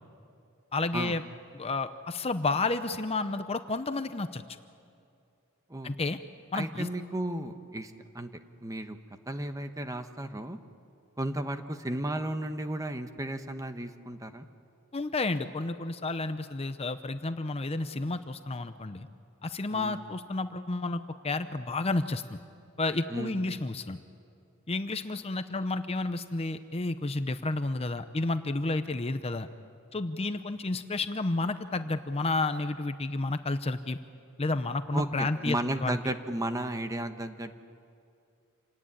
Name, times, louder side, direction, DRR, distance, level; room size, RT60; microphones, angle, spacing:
voice 1, 0.7-1.2 1.5-4.4 5.8-6.2 6.5-6.9 14.9-19.1 19.4-22.4 22.8-24.0 24.7-29.5 29.9-34.0 34.4-36.0, left 2 dB, 30° left, 10 dB, 0.7 m, -31 dB
voice 2, 6.5-8.3 8.6-9.0 9.3-10.6 11.2-14.5 19.7-20.0 23.1-23.4 34.9-37.6, right 1 dB, 15° right, 8 dB, 1.1 m, -34 dB
27.5 x 18.0 x 9.9 m, 2.5 s
head